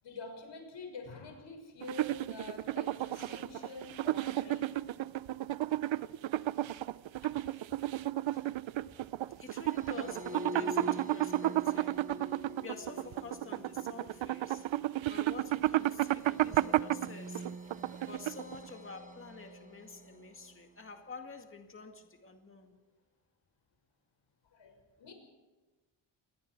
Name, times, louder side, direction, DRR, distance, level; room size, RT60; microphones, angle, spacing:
voice 1, 0.0-4.7 5.8-5.9 7.2-7.6 8.3-8.5 24.5-25.1, left 3 dB, 70° left, 6.2 m, -47 dB
sound 1, 1.8-18.7, right 14 dB, 80° right, 0.7 m, -32 dB
voice 2, 9.4-14.7 15.1-17.5 18.0-22.8, left 4 dB, 25° left, 2.2 m, -49 dB
sound 2, 9.6-20.9, equal, 15° right, 5.1 m, -47 dB
28.0 x 20.5 x 4.7 m
wide cardioid pair, 170°, 45 cm